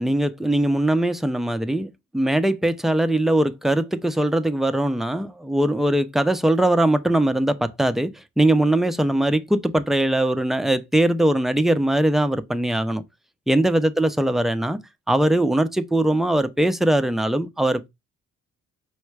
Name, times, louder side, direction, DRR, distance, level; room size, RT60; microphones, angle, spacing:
voice 1, 0.0-13.0 13.5-14.8 15.1-17.9, right 1 dB, ahead, 0.4 m, -21 dB
5.5 x 2.1 x 4.6 m
cardioid pair, 90°, 30 cm